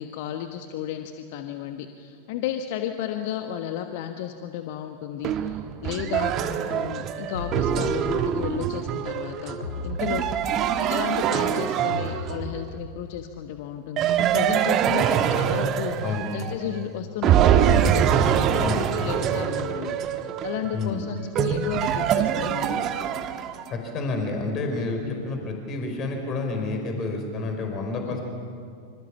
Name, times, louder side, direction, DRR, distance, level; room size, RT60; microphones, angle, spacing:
voice 1, 0.0-9.6 9.8-20.0 20.4-22.8 28.1-28.2, left 10 dB, 50° left, 7 dB, 1.3 m, -33 dB
sound 1, 5.2-12.6 14.0-16.8 17.2-23.7, right 9 dB, 35° right, 1.5 m, -24 dB
sound 2, 7.3-8.4 9.6-10.9 11.9-13.1, left 2 dB, 75° left, 4.3 m, -36 dB
voice 2, 20.7-21.1 23.7-28.2, left 3 dB, 30° left, 4 dB, 4.8 m, -29 dB
26.5 x 26.0 x 7.2 m, 2.3 s
figure-of-eight pair, 90°, 0 cm